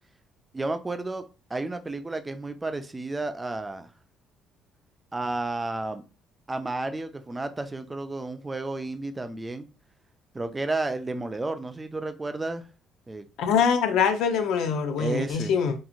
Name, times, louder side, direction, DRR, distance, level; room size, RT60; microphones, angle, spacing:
voice 1, 0.5-1.2 1.5-3.9 5.1-6.0 6.5-9.7 10.3-12.7 13.1-13.3 15.0-15.5, right 2 dB, 20° right, 0.3 m, -32 dB
voice 2, 13.4-15.7, left 6 dB, 75° left, 0.4 m, -23 dB
2.9 x 2.5 x 2.4 m
cardioid pair, 90°, 0 cm